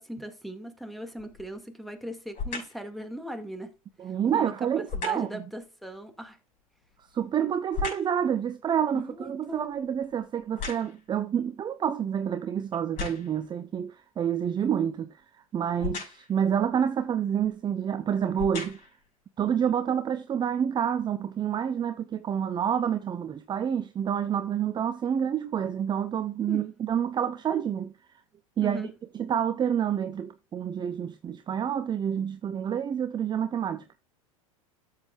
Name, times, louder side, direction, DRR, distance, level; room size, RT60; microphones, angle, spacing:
voice 1, 0.0-3.7 4.3-6.4 8.9-9.7 26.5-26.6 28.6-28.9, equal, ahead, 2.1 m, -39 dB
sound 1, 1.2-1.6 2.3-2.9 4.9-5.4 6.8-8.2 8.7-11.2 11.8-11.9 12.7-13.5 15.8-16.4 17.4-17.5 18.2-19.0 19.7-19.8, left 5 dB, 45° left, 5.8 m, -37 dB
voice 2, 4.0-5.4 7.1-15.1 15.5-18.8 19.4-27.9 28.6-28.9 29.1-34.0, right 8 dB, 25° right, 0.7 m, -28 dB
13.5 x 7.6 x 2.4 m
hypercardioid pair, 85°, 18 cm